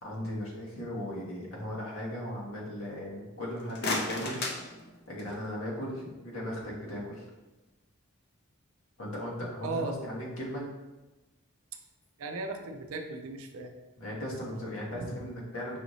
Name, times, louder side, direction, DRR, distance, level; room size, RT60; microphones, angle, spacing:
voice 1, 0.0-4.5 5.1-7.2 9.0-10.7 14.0-15.8, equal, 85° left, -4 dB, 1.3 m, -37 dB
sound 1, 3.4-5.5, left 2 dB, 50° left, 0.6 m, -35 dB
voice 2, 9.6-10.0 12.2-13.7 15.0-15.1, right 3 dB, 85° right, 5 dB, 0.5 m, -36 dB
5.5 x 2.7 x 3.0 m, 1.1 s
head